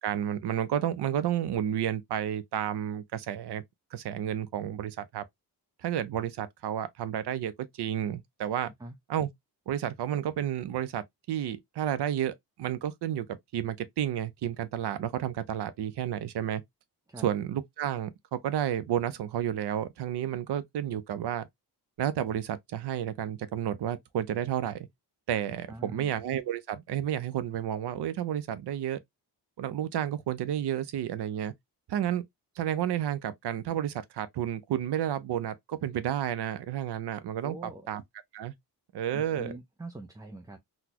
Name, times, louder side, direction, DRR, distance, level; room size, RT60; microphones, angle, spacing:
voice 1, 0.0-3.6 3.9-5.2 5.8-8.7 9.1-9.3 9.7-13.3 13.5-16.6 17.2-21.5 22.0-24.8 25.3-29.0 29.6-31.5 31.9-32.2 32.6-38.0 38.3-38.5 38.9-39.5, right 10 dB, 75° right, 0.6 m, -31 dB
voice 2, 25.7-26.1 37.4-37.9 39.1-40.6, right 2 dB, 10° right, 0.3 m, -43 dB
4.0 x 2.2 x 2.8 m
wide cardioid pair, 135°, 41 cm